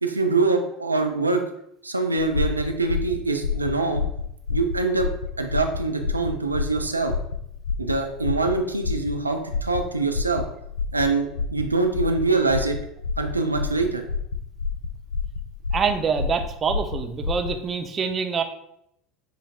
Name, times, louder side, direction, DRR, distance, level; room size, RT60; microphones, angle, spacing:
voice 1, 0.0-1.4 1.8-4.0 4.5-5.1 5.4-7.2 7.8-10.4 10.9-12.8 13.2-14.0, right 3 dB, 90° right, 5 dB, 0.4 m, -24 dB
sound 1, 2.2-17.6, left 5 dB, 80° left, 0.4 m, -29 dB
voice 2, 15.7-18.4, right 6 dB, 30° right, 7 dB, 0.5 m, -25 dB
7.0 x 3.2 x 2.3 m, 0.77 s
figure-of-eight pair, 75°, 0 cm